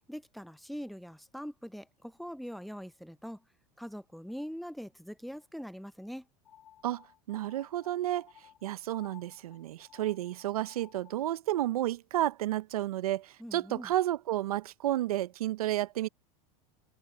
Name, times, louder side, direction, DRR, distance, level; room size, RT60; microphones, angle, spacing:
voice 1, 0.1-3.4 3.8-6.3 13.4-13.9, equal, ahead, 0.4 m, -42 dB
sound 1, 6.4-11.3, left 10 dB, 90° left, 7.1 m, -57 dB
voice 2, 6.8-16.1, right 14 dB, 90° right, 0.6 m, -32 dB
hypercardioid pair, 100°, 18 cm